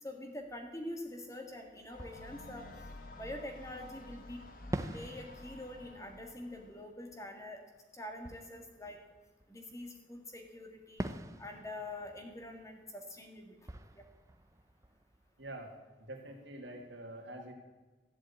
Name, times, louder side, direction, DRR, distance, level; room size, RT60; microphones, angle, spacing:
voice 1, 0.0-2.6 3.1-4.4 4.9-7.6 7.9-9.0 9.5-11.1 11.4-14.0, left 1 dB, 15° left, 3 dB, 1.8 m, -45 dB
Fireworks, 1.3-1.4 1.9-3.9 4.7-10.1 11.0-15.7, right 1 dB, 15° right, 0.6 m, -47 dB
sound 1, 1.9-6.8, left 2 dB, 50° left, 1.4 m, -51 dB
voice 2, 15.4-15.7 16.0-17.5, right 1 dB, 85° right, 2 dB, 2.5 m, -46 dB
14.5 x 7.8 x 8.5 m, 1.3 s
head